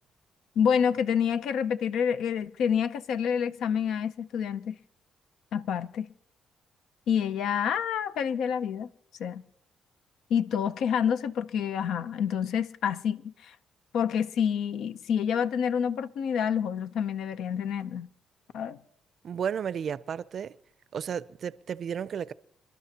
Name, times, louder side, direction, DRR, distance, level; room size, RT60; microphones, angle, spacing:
voice 1, 0.6-4.8 5.5-6.1 7.1-8.9 9.2-9.4 10.3-13.5 13.9-18.1 18.5-18.8, left 7 dB, 80° left, 0.6 m, -28 dB
voice 2, 19.2-20.5 20.9-22.3, right 8 dB, 55° right, 0.4 m, -33 dB
27.5 x 12.0 x 2.8 m
cardioid pair, 90°, 0 cm